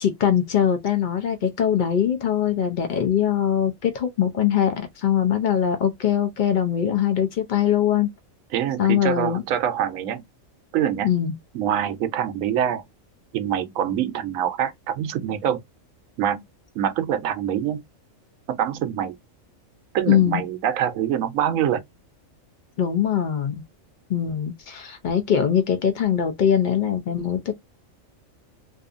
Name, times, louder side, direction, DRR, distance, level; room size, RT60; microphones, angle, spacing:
voice 1, 0.0-8.1 8.8-9.4 11.0-11.3 20.1-20.4 22.8-23.6 24.1-27.5, left 9 dB, 80° left, 0.4 m, -22 dB
voice 2, 8.5-10.2 10.7-11.1 11.5-12.8 13.3-15.6 16.2-16.4 16.7-17.8 18.5-19.2 19.9-21.8, right 9 dB, 80° right, 1.0 m, -25 dB
2.6 x 2.4 x 2.4 m
omnidirectional pair, 1.4 m